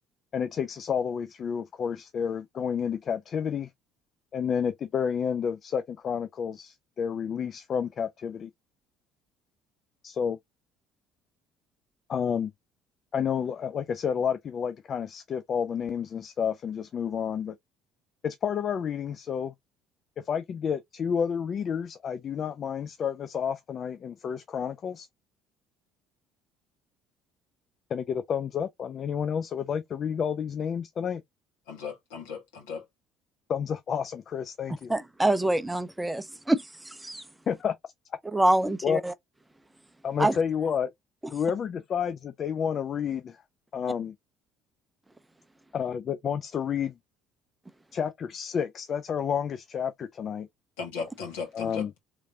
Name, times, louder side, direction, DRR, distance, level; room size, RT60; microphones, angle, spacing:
voice 1, 0.3-3.7 4.3-8.5 10.0-10.4 12.1-12.5 13.1-17.6 18.2-19.5 20.2-25.1 27.9-31.2 33.5-34.9 37.5-37.9 38.8-39.0 40.0-40.9 41.3-43.4 43.7-44.1 45.7-46.9 47.9-50.5 51.5-51.9, left 7 dB, 45° left, 0.4 m, -30 dB
voice 2, 31.7-32.8 50.8-51.9, left 5 dB, 75° left, 1.5 m, -36 dB
voice 3, 34.9-37.2 38.3-39.1 40.2-40.4, right 1 dB, 10° right, 0.5 m, -26 dB
3.6 x 3.2 x 2.7 m
hypercardioid pair, 55°, 0 cm